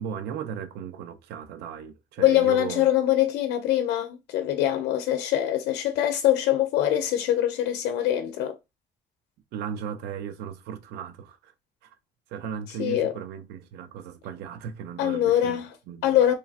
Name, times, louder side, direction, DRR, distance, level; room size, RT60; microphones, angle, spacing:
voice 1, 0.0-2.8 9.5-11.5 11.8-12.0 12.3-15.6 15.9-16.2, right 8 dB, 80° right, 0.4 m, -36 dB
voice 2, 2.2-8.6 12.8-13.1 15.0-15.7 16.0-16.3, left 12 dB, 85° left, 0.4 m, -23 dB
3.2 x 2.3 x 2.4 m
cardioid pair, 110°, 17 cm